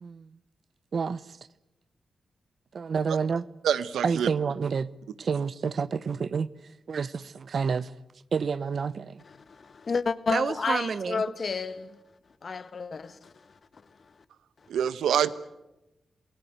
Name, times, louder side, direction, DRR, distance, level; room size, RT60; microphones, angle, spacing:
voice 1, 0.0-0.3 0.9-1.4 2.7-3.5 4.0-4.9 5.2-6.5 6.9-7.9 8.3-9.2 10.3-11.3, right 5 dB, 65° right, 0.8 m, -29 dB
voice 2, 3.6-4.3 14.7-15.3, right 9 dB, 85° right, 0.9 m, -25 dB
voice 3, 9.2-12.0 12.4-13.5, left 5 dB, 55° left, 1.5 m, -31 dB
27.5 x 18.0 x 9.4 m
supercardioid pair, 45°, 0 cm